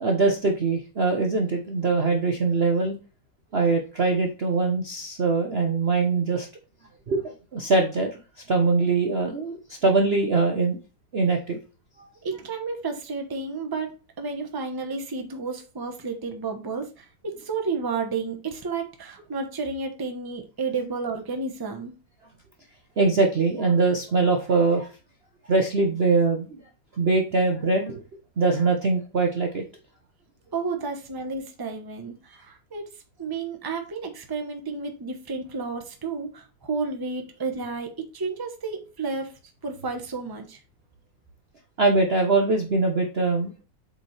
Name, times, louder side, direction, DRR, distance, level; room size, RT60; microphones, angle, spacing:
voice 1, 0.0-3.0 3.5-6.5 7.1-8.1 8.5-10.8 11.1-11.6 12.0-12.1 23.0-24.9 25.5-26.6 27.0-28.0 28.4-29.6 41.8-43.6, right 3 dB, 45° right, 3 dB, 0.9 m, -22 dB
voice 2, 12.2-13.9 14.2-21.9 30.5-32.9 33.2-39.3 39.6-40.6, right 4 dB, 15° right, 4 dB, 0.8 m, -31 dB
7.9 x 4.4 x 3.2 m, 0.33 s
omnidirectional pair, 2.0 m